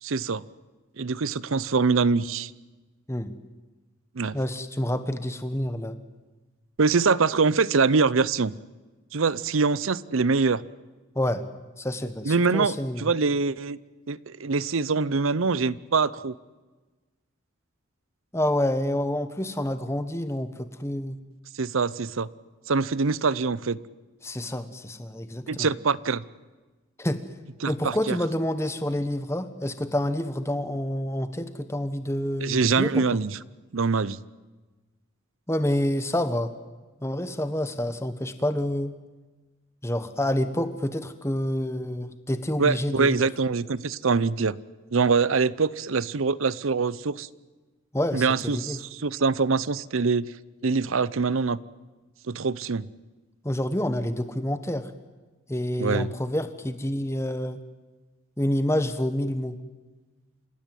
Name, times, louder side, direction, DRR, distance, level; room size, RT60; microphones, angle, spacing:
voice 1, 0.0-0.4 1.0-2.5 4.2-4.4 6.8-8.6 9.1-10.6 12.2-13.8 14.1-16.3 21.6-22.3 22.7-23.8 25.5-26.2 27.6-28.2 32.4-33.4 33.7-34.2 42.6-44.6 44.9-47.3 48.1-50.3 50.6-51.6 52.3-52.9 55.8-56.1, right 4 dB, 75° right, 19 dB, 0.7 m, -24 dB
voice 2, 4.3-6.0 11.1-11.4 11.8-13.1 18.3-21.2 24.2-25.7 27.0-27.2 27.7-33.0 35.5-36.5 37.0-38.9 39.8-43.3 47.9-48.8 53.4-54.9 55.5-57.6 58.4-59.6, left 1 dB, 15° left, 10 dB, 1.2 m, -28 dB
28.5 x 16.5 x 9.3 m, 1.3 s
head